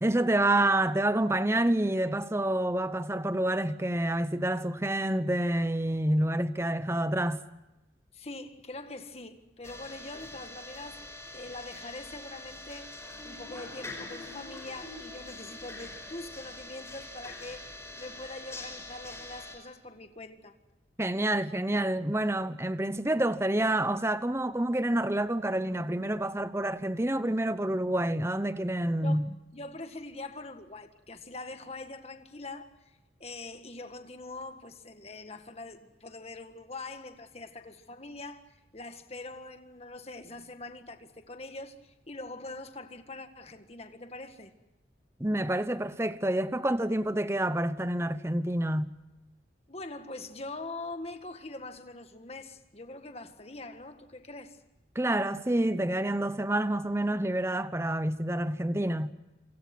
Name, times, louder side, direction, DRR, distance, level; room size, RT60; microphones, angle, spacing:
voice 1, 0.0-7.4 21.0-29.3 45.2-48.9 54.9-59.1, right 1 dB, 15° right, 0.9 m, -28 dB
voice 2, 8.1-12.9 13.2-17.7 18.0-20.6 29.0-29.2 29.5-44.5 49.7-54.6, left 2 dB, 35° left, 1.8 m, -43 dB
sound 1, 9.6-19.6, left 2 dB, 15° left, 5.6 m, -44 dB
27.5 x 26.0 x 6.1 m
head